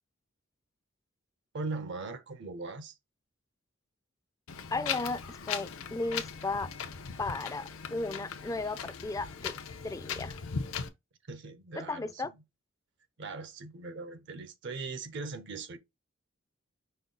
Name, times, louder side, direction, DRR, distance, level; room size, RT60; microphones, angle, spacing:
voice 1, 1.5-2.9 11.3-12.4 13.2-15.8, right 3 dB, 60° right, 0.6 m, -40 dB
Wind, 4.5-10.9, left 6 dB, 90° left, 0.7 m, -38 dB
voice 2, 4.7-6.7 7.2-7.6 7.9-9.5 9.8-10.4 11.8-12.3, left 3 dB, 15° left, 0.3 m, -35 dB
5.4 x 2.2 x 3.8 m
head